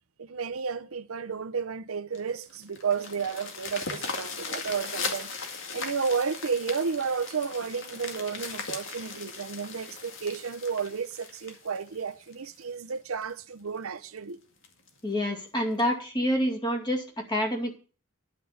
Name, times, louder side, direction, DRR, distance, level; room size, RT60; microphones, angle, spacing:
voice 1, 0.2-5.3 5.7-14.4, right 5 dB, 90° right, 0.7 m, -32 dB
sound 1, 2.1-12.6 13.2-13.3 13.7-13.8 14.2-14.3 14.6-14.9 15.8-15.9, left 4 dB, 60° left, 2.2 m, -38 dB
voice 2, 15.0-17.8, equal, 20° left, 2.3 m, -27 dB
11.0 x 5.9 x 8.6 m
head